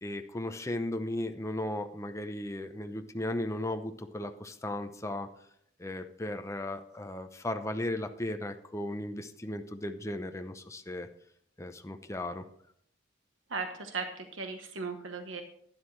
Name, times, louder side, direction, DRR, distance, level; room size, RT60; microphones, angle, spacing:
voice 1, 0.0-5.3 5.8-11.1 11.6-12.4, left 1 dB, 15° left, 7 dB, 0.7 m, -36 dB
voice 2, 13.5-15.4, right 4 dB, 80° right, 5 dB, 1.1 m, -37 dB
11.5 x 10.5 x 3.3 m, 0.68 s
head